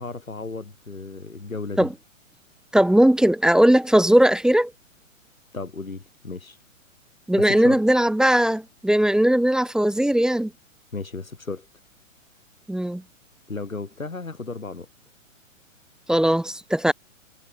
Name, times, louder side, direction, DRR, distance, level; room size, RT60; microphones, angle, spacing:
voice 1, 0.0-1.9 5.5-6.6 7.4-7.8 10.9-11.7 13.5-14.9, left 3 dB, 85° left, 7.1 m, -34 dB
voice 2, 2.7-4.7 7.3-10.5 12.7-13.0 16.1-16.9, right 1 dB, ahead, 1.2 m, -18 dB
figure-of-eight pair, 125°, 40 cm